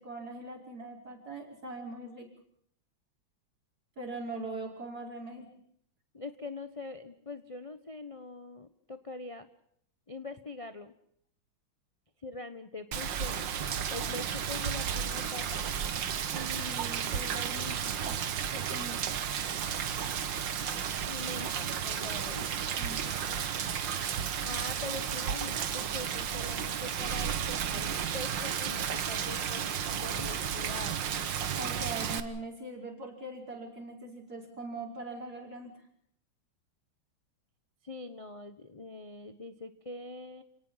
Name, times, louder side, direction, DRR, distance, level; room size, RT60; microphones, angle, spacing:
voice 1, 0.0-2.3 4.0-5.5 16.3-18.2 18.5-19.1 22.8-23.0 31.5-35.7, right 2 dB, 50° right, 2 dB, 5.8 m, -41 dB
voice 2, 6.1-9.5 10.1-10.9 12.2-13.4 13.9-15.6 21.1-22.5 24.4-29.6 29.9-31.0 37.8-40.4, left 2 dB, 25° left, 9 dB, 0.8 m, -43 dB
Rain, 12.9-32.2, right 8 dB, 65° right, 2.0 m, -33 dB
29.0 x 18.5 x 5.7 m, 0.67 s
omnidirectional pair, 2.2 m